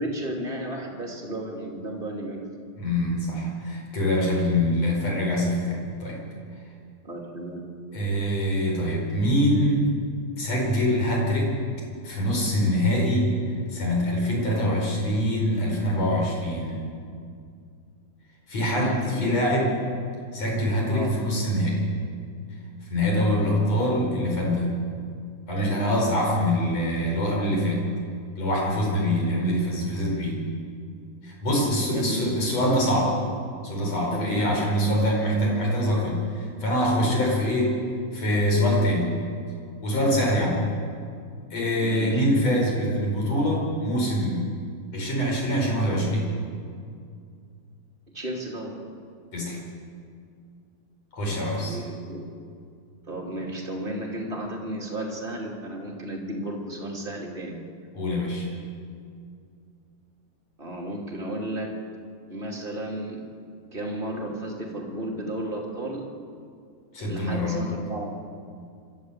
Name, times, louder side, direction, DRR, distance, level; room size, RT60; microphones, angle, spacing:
voice 1, 0.0-2.4 7.0-7.7 18.7-19.4 20.9-21.1 31.7-32.2 34.1-34.9 41.8-42.2 48.1-48.8 51.6-52.2 53.1-57.6 60.6-61.7 62.3-63.2 63.7-66.1 67.0-68.2, right 1 dB, 20° right, 0 dB, 1.8 m, -33 dB
voice 2, 2.8-6.3 7.9-9.9 10.4-11.6 12.0-13.3 13.7-16.8 18.5-19.7 20.3-21.9 22.9-24.8 25.5-27.9 28.4-30.4 31.2-33.2 33.6-37.8 38.1-39.2 39.8-40.7 41.5-44.5 44.9-46.3 49.3-49.6 51.1-51.8 57.9-58.5 66.9-67.7, equal, 35° left, -1 dB, 5.5 m, -24 dB
26.0 x 13.5 x 8.0 m, 2.3 s
omnidirectional pair, 5.1 m